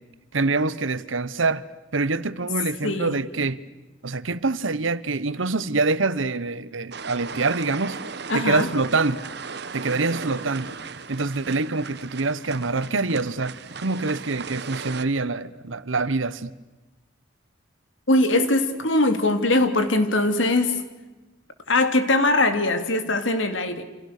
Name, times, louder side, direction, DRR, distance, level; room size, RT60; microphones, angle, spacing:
voice 1, 0.3-1.6 1.9-3.6 4.0-8.0 8.3-9.2 9.7-10.7 11.1-16.5, right 3 dB, 90° right, 1.1 m, -25 dB
voice 2, 2.8-3.2 8.3-8.7 18.1-20.8 21.7-23.8, left 2 dB, 80° left, 2.9 m, -21 dB
sound 1, 6.9-15.0, right 5 dB, 55° right, 1.2 m, -37 dB
29.0 x 27.0 x 6.7 m
head